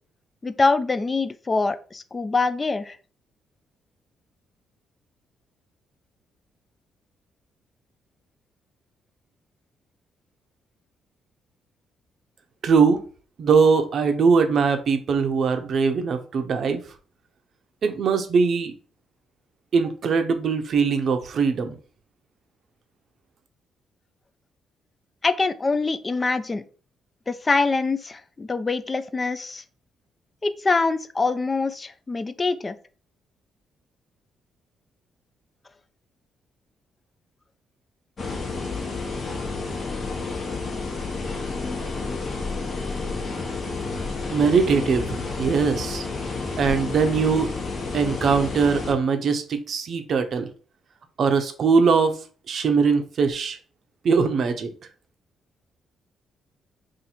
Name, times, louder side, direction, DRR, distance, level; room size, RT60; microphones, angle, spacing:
voice 1, 0.4-3.0 25.2-26.6 27.3-29.6 30.4-32.8, left 3 dB, 25° left, 12 dB, 0.3 m, -24 dB
voice 2, 12.6-13.0 13.4-16.8 17.8-18.7 19.7-21.8 44.3-46.0 46.6-47.5 47.9-50.5 51.2-52.2 52.5-53.6 54.0-54.7, right 5 dB, 55° right, 7 dB, 0.6 m, -21 dB
sound 1, 38.2-48.9, left 3 dB, 45° left, 0.8 m, -30 dB
2.8 x 2.6 x 4.1 m, 0.39 s
cardioid pair, 90°, 0 cm